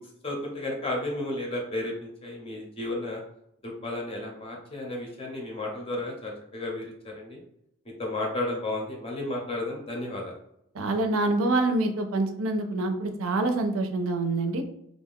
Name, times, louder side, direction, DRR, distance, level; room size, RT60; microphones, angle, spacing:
voice 1, 0.2-3.2 3.6-7.4 8.0-10.3, left 2 dB, 25° left, -1 dB, 0.7 m, -33 dB
voice 2, 10.7-14.6, right 2 dB, 65° right, 6 dB, 0.4 m, -26 dB
2.5 x 2.2 x 3.4 m, 0.78 s
head